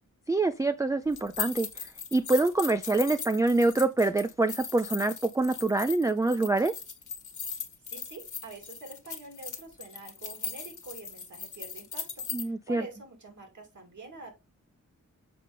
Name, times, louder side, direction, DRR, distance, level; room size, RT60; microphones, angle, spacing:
voice 1, 0.3-1.7 2.1-6.7 12.3-12.8, right 2 dB, 10° right, 0.3 m, -25 dB
sound 1, 1.1-12.4, left 6 dB, 70° left, 1.4 m, -39 dB
voice 2, 7.9-14.4, right 3 dB, 65° right, 2.9 m, -46 dB
6.7 x 5.2 x 3.6 m
wide cardioid pair, 140°, 31 cm